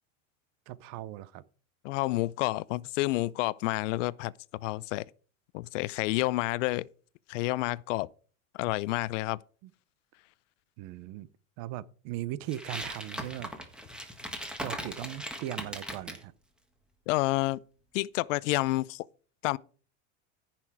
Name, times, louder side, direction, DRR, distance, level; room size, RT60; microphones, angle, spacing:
voice 1, 0.7-1.4 9.6-9.7 10.8-11.3 11.6-13.5 14.6-16.3, right 14 dB, 45° right, 0.7 m, -38 dB
voice 2, 1.8-4.3 4.6-5.0 5.5-6.9 7.3-8.1 8.5-9.4 17.1-17.6 17.9-19.0 19.4-19.6, left 19 dB, 70° left, 0.6 m, -29 dB
sound 1, 12.5-16.2, equal, ahead, 1.6 m, -39 dB
14.5 x 6.0 x 4.7 m
supercardioid pair, 145°, 38 cm